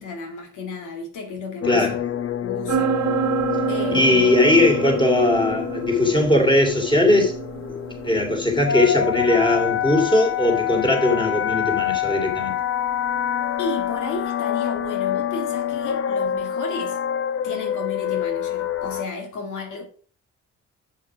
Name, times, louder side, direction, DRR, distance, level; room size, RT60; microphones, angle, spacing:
voice 1, 0.0-1.9 2.4-3.0 3.7-4.3 13.6-17.0 17.4-19.8, left 3 dB, 80° left, 2.4 m, -32 dB
sound 1, 1.6-19.1, left 10 dB, 50° left, 0.7 m, -27 dB
sound 2, 2.7-14.2, right 9 dB, 65° right, 1.2 m, -30 dB
voice 2, 3.9-7.3 8.0-12.5, left 2 dB, 15° left, 3.1 m, -19 dB
7.4 x 7.2 x 5.0 m
cardioid pair, 90°, 30 cm